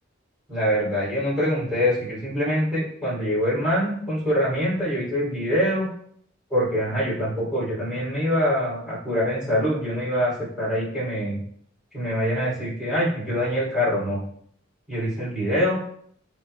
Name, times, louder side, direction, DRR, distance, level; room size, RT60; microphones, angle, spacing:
voice 1, 0.5-5.9 6.5-11.4 11.9-14.2 14.9-15.8, equal, 5° right, -9 dB, 3.0 m, -24 dB
11.5 x 4.8 x 2.2 m, 0.64 s
head